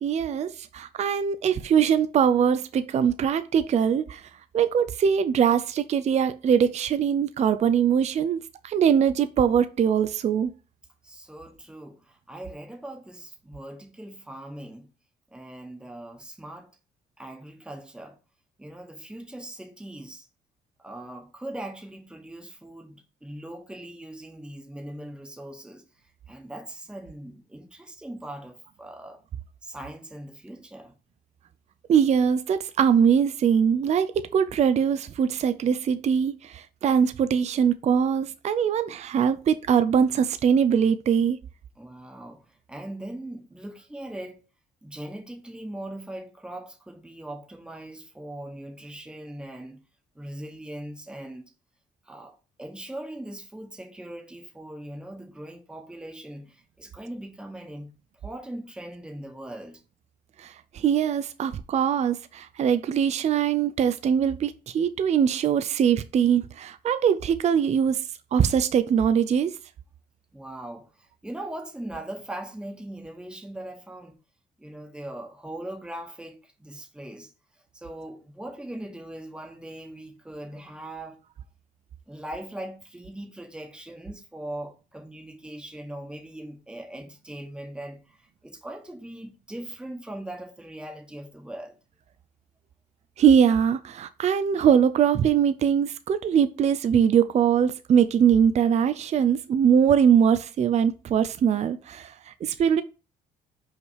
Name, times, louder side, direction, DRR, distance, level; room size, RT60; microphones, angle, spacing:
voice 1, 0.0-4.3 4.5-10.5 31.9-41.4 60.4-68.0 68.3-69.5 93.2-102.8, right 8 dB, 40° right, 0.5 m, -22 dB
voice 2, 11.0-14.9 15.3-16.7 17.2-18.2 18.6-20.3 20.8-25.8 26.3-29.2 29.6-30.9 41.8-44.4 44.8-49.8 50.1-51.5 52.0-57.9 58.2-59.8 70.3-74.2 74.6-77.3 77.7-81.2 82.1-91.8, right 1 dB, 5° right, 1.4 m, -40 dB
5.7 x 4.7 x 4.7 m
cardioid pair, 110°, 17 cm